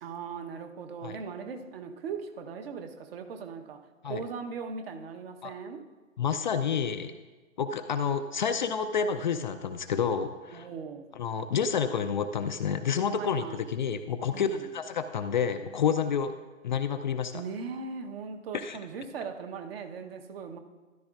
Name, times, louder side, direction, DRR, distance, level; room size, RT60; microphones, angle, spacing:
voice 1, 0.0-5.9 10.5-11.1 13.2-13.7 14.3-14.7 17.3-20.6, right 5 dB, 50° right, 5 dB, 1.1 m, -39 dB
voice 2, 6.2-7.1 7.6-10.7 11.2-16.3 16.6-17.4 18.5-18.8, left 7 dB, 40° left, 8 dB, 0.4 m, -29 dB
14.0 x 12.5 x 2.5 m, 1.3 s
figure-of-eight pair, 120°, 39 cm